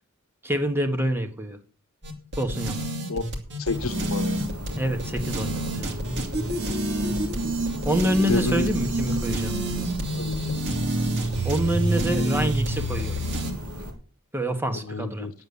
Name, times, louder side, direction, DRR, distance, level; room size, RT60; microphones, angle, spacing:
voice 1, 0.4-1.6 2.4-2.9 4.8-6.0 7.8-9.6 11.4-13.1 14.3-15.3, equal, 10° right, 7 dB, 1.4 m, -26 dB
sound 1, 2.0-13.5, right 1 dB, 55° right, 2.5 m, -28 dB
voice 2, 3.6-4.4 8.3-8.7 9.1-9.2 10.2-10.6 14.9-15.3, left 3 dB, 65° left, 9 dB, 1.0 m, -29 dB
sound 2, 3.7-13.9, equal, 80° right, 2.7 m, -36 dB
9.9 x 8.2 x 6.9 m, 0.41 s
head